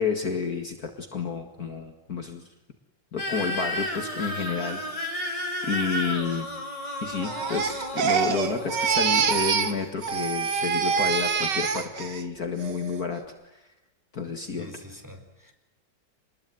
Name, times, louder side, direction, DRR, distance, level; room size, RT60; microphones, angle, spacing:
voice 1, 0.0-2.4 3.1-4.8 5.6-6.5 7.0-13.2 13.5-13.6 14.1-14.8, left 5 dB, 45° left, 5 dB, 2.4 m, -30 dB
sound 1, 3.2-9.9, left 1 dB, 15° left, 4.2 m, -33 dB
Crying sobbing, 7.2-9.8 10.0-12.2 12.6-13.0, right 6 dB, 60° right, 2.2 m, -26 dB
voice 2, 14.6-15.5, equal, 10° right, 3 dB, 4.1 m, -44 dB
27.0 x 21.0 x 9.4 m, 0.97 s
omnidirectional pair, 2.3 m